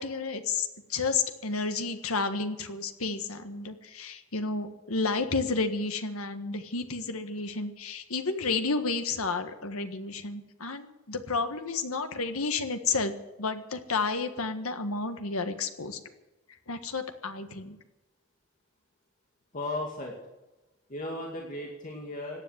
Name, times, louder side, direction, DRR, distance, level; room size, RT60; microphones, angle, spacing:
voice 1, 0.0-13.1 13.4-16.0 16.7-17.8, left 4 dB, 75° left, 8 dB, 1.6 m, -31 dB
voice 2, 19.5-20.2 20.9-22.4, left 1 dB, 40° left, 0 dB, 2.4 m, -35 dB
17.5 x 10.0 x 8.1 m, 1.0 s
head